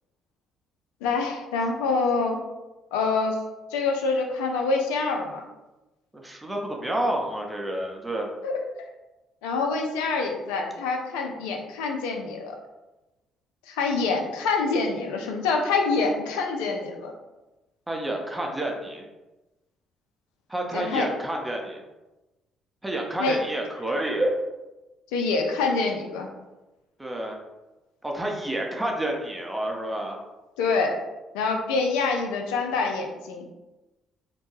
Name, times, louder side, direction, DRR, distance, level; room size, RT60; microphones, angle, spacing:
voice 1, 1.0-2.4 2.9-3.4 3.7-5.4 8.4-8.6 9.4-12.5 13.7-17.1 20.7-21.1 23.2-23.4 25.1-26.3 30.6-31.0 31.3-33.5, left 4 dB, 80° left, 2 dB, 0.4 m, -26 dB
voice 2, 6.1-8.3 17.9-19.1 20.5-21.8 22.8-24.4 27.0-27.4 28.0-30.2, right 1 dB, 10° right, 0 dB, 0.6 m, -29 dB
2.7 x 2.1 x 3.0 m, 1.0 s
hypercardioid pair, 50°, 0 cm